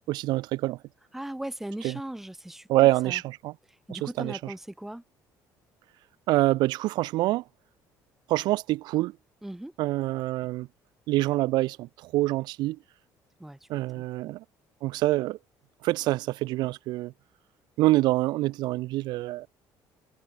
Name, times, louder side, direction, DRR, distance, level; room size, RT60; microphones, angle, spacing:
voice 1, 0.1-0.8 1.8-2.0 2.7-3.5 3.9-4.5 6.3-7.4 8.3-9.1 9.8-10.7 11.1-12.8 13.7-14.4 14.8-15.4 15.8-17.1 17.8-19.5, right 18 dB, 70° right, 0.8 m, -26 dB
voice 2, 1.1-3.2 3.9-5.0 9.4-9.7 13.4-14.0, right 1 dB, 5° right, 3.7 m, -38 dB
cardioid pair, 160°, 8 cm